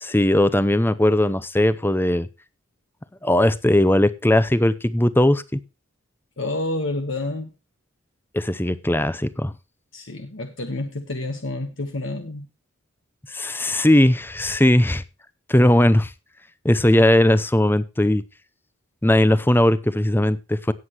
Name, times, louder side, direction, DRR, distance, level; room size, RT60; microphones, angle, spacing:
voice 1, 0.0-2.3 3.2-5.6 8.3-9.5 13.3-15.0 15.5-16.1 16.6-18.2 19.0-20.7, left 1 dB, 10° left, 16 dB, 0.6 m, -18 dB
voice 2, 6.4-7.5 9.9-12.5, left 2 dB, 60° left, 6 dB, 1.3 m, -29 dB
17.5 x 8.1 x 3.0 m, 0.29 s
head